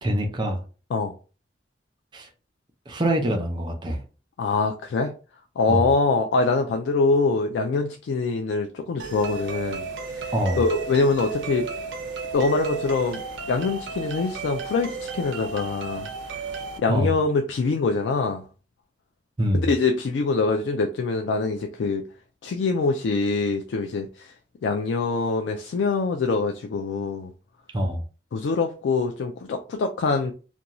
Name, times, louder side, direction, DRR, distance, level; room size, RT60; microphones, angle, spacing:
voice 1, 0.0-0.6 2.1-2.3 2.9-4.0 5.7-5.9 10.3-10.7 16.9-17.2 19.4-19.7 27.7-28.0, equal, 25° right, 0.5 m, -24 dB
voice 2, 4.4-5.1 5.6-11.7 12.3-13.2 13.5-16.1 16.8-18.4 19.5-22.0 22.4-24.3 24.6-27.3 28.3-30.3, left 4 dB, 80° left, 0.3 m, -24 dB
sound 1, 9.0-16.8, right 5 dB, 85° right, 0.5 m, -33 dB
2.5 x 2.2 x 2.9 m
head